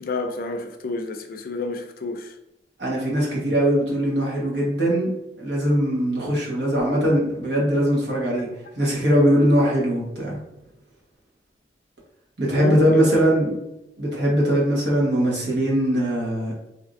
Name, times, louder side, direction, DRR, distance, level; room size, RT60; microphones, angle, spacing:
voice 1, 0.0-2.3 12.5-13.1, left 2 dB, 55° left, 0.4 m, -29 dB
voice 2, 2.8-5.1 5.4-8.5 8.8-10.4 12.4-13.5 14.0-16.5, equal, 80° right, 1.2 m, -21 dB
3.4 x 2.6 x 2.5 m
head